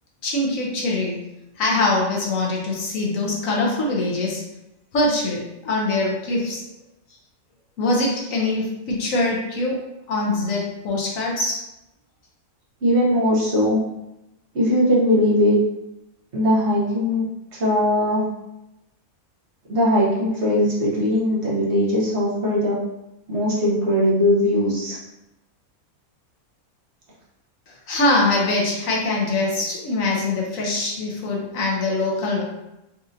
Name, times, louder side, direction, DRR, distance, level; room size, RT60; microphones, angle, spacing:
voice 1, 0.2-1.2 1.6-4.4 4.9-6.6 7.8-9.8 10.1-11.6 27.9-32.4, left 2 dB, 70° left, -2 dB, 1.1 m, -23 dB
voice 2, 12.8-13.8 14.5-15.6 16.3-17.2 17.5-18.2 19.7-22.8 23.3-25.0, left 1 dB, 50° right, -6 dB, 1.1 m, -20 dB
4.2 x 2.5 x 2.6 m, 0.90 s
omnidirectional pair, 1.5 m